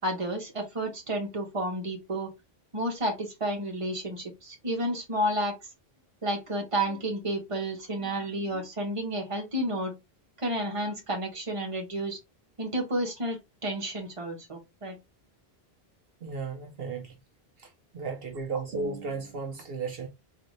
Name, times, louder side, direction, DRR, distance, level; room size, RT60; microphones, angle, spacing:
voice 1, 0.0-2.3 2.7-5.5 6.2-9.9 10.4-12.2 12.6-15.0, right 1 dB, 30° right, 1.1 m, -31 dB
voice 2, 16.2-17.2 17.6-20.1, right 4 dB, 70° right, 0.9 m, -35 dB
3.9 x 2.9 x 3.1 m
omnidirectional pair, 1.0 m